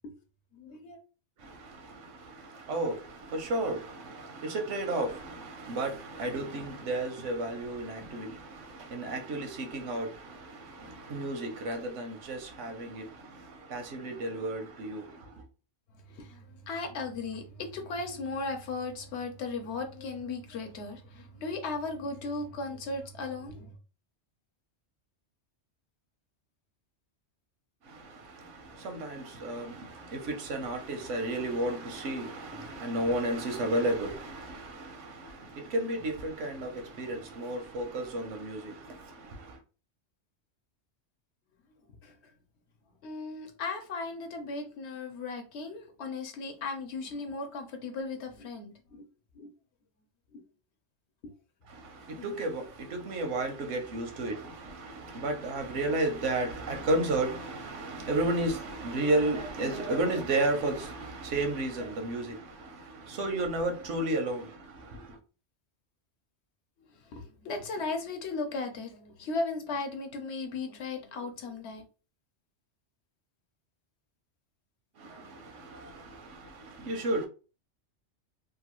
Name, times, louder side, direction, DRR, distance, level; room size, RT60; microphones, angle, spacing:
voice 1, 0.5-1.0 16.1-23.7 42.0-42.1 43.0-49.1 49.4-49.5 50.3-50.4 51.2-51.3 52.1-52.3 67.1-71.8, left 3 dB, 70° left, 1.0 m, -36 dB
voice 2, 1.4-15.4 27.9-39.6 51.7-65.2 75.0-77.3, right 2 dB, 90° right, 1.1 m, -33 dB
3.0 x 2.3 x 2.9 m
omnidirectional pair, 1.2 m